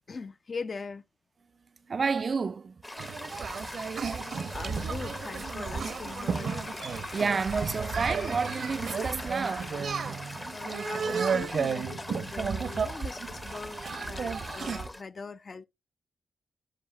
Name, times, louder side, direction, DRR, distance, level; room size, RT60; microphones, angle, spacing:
voice 1, 0.1-1.0 4.5-6.7 10.5-15.6, left 4 dB, 50° left, 0.6 m, -41 dB
voice 2, 1.9-2.8 4.7-4.8 7.1-9.8, right 5 dB, 50° right, 0.4 m, -30 dB
Toilet flush, 2.8-15.0, left 1 dB, 20° left, 0.7 m, -41 dB
sound 1, 3.0-14.9, right 6 dB, 70° right, 0.9 m, -33 dB
Applause, 5.0-10.8, left 4 dB, 70° left, 2.7 m, -48 dB
11.5 x 4.8 x 2.4 m
cardioid pair, 60°, 0 cm